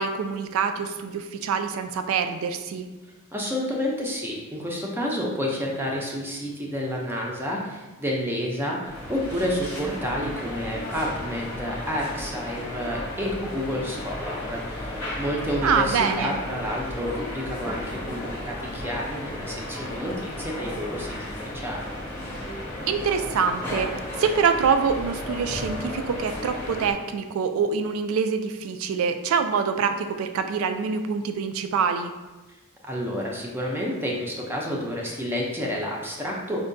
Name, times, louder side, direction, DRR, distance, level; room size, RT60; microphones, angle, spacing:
voice 1, 0.0-2.9 15.6-16.4 22.9-23.9 24.2-32.1, right 6 dB, 85° right, 8 dB, 0.3 m, -25 dB
voice 2, 3.3-22.0 32.8-36.6, equal, 10° right, -2 dB, 0.4 m, -30 dB
sound 1, 8.8-26.9, left 1 dB, 10° left, 0.8 m, -34 dB
4.5 x 2.1 x 2.5 m, 1.1 s
head